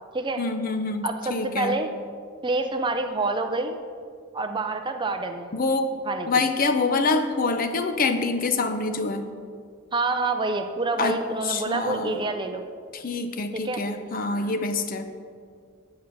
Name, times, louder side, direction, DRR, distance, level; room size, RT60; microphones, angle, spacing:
voice 1, 0.4-1.8 5.5-5.9 6.3-9.3 11.0-11.2 11.4-12.2 12.9-15.1, left 3 dB, 40° left, 7 dB, 0.6 m, -26 dB
voice 2, 1.0-1.9 2.4-3.8 4.3-5.5 6.1-6.4 9.9-12.6 13.5-13.8, right 3 dB, 20° right, 6 dB, 0.5 m, -27 dB
sound 1, 10.9-11.4 12.0-12.6 14.3-14.7, equal, 5° right, 2.1 m, -46 dB
8.4 x 7.4 x 6.0 m, 2.2 s
head